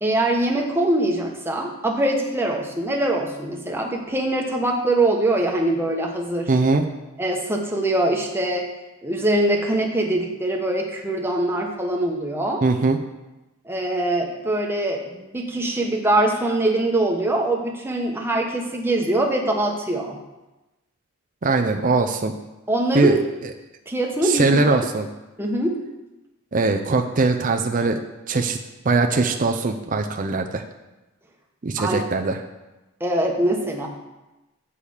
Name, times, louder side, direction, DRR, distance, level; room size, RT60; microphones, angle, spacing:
voice 1, 0.0-6.5 7.2-8.6 9.0-12.6 13.7-20.2 22.7-23.2 23.9-24.8 25.4-25.8 31.8-32.0 33.0-33.9, right 1 dB, 10° right, 0 dB, 1.0 m, -23 dB
voice 2, 6.5-6.8 12.6-13.0 21.4-22.3 22.9-23.5 24.2-25.1 26.5-28.6 28.8-30.6 31.6-32.4, right 3 dB, 35° right, 5 dB, 0.5 m, -21 dB
8.4 x 5.0 x 7.1 m, 1.0 s
head